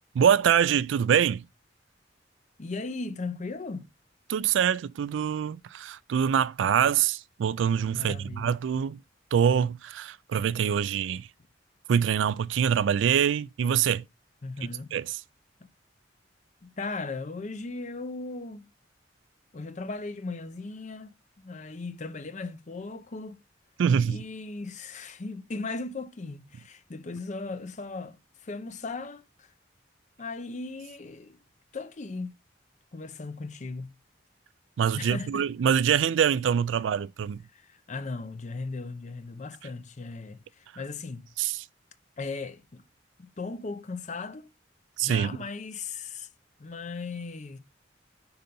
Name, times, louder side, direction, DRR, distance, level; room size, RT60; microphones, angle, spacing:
voice 1, 0.1-1.4 4.3-9.0 9.3-11.3 11.9-14.0 14.9-15.2 23.8-24.2 34.8-37.4 41.4-41.6 45.0-45.4, right 8 dB, 85° right, 0.3 m, -24 dB
voice 2, 2.6-3.9 7.9-8.5 14.4-14.9 15.6-15.7 16.6-18.7 19.5-23.4 24.0-29.5 30.2-31.4 31.7-32.3 32.9-33.9 34.9-35.5 37.5-41.3 42.2-42.8 43.2-44.5 45.0-46.3 46.6-47.6, left 3 dB, 40° left, 0.5 m, -37 dB
5.6 x 3.9 x 5.3 m
head